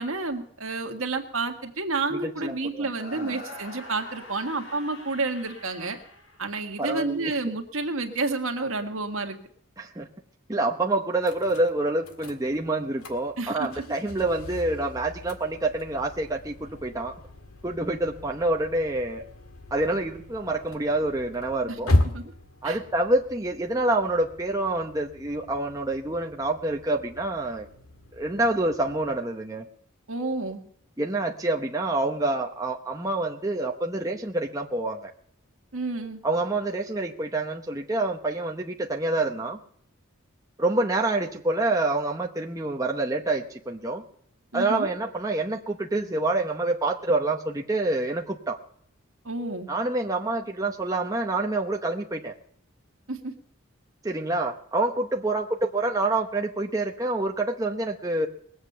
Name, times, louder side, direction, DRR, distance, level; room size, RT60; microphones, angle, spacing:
voice 1, 0.0-6.0 6.4-9.4 13.4-13.8 21.7-22.3 22.6-22.8 30.1-30.6 35.7-36.2 44.5-44.9 49.3-49.7 53.1-53.3, right 3 dB, 75° right, 5 dB, 1.7 m, -30 dB
voice 2, 2.1-2.9 3.2-3.3 6.8-7.3 9.8-10.1 10.5-17.1 17.6-19.2 19.7-21.9 22.6-27.7 28.1-29.7 31.0-35.1 36.2-39.6 40.6-44.0 44.5-48.6 49.7-52.3 54.0-58.3, right 2 dB, 15° right, 1 dB, 0.8 m, -27 dB
sound 1, 2.9-7.1, left 2 dB, 60° left, 2.3 m, -44 dB
sound 2, 11.2-29.2, left 1 dB, 90° left, 1.8 m, -35 dB
20.5 x 8.0 x 6.8 m, 0.65 s
head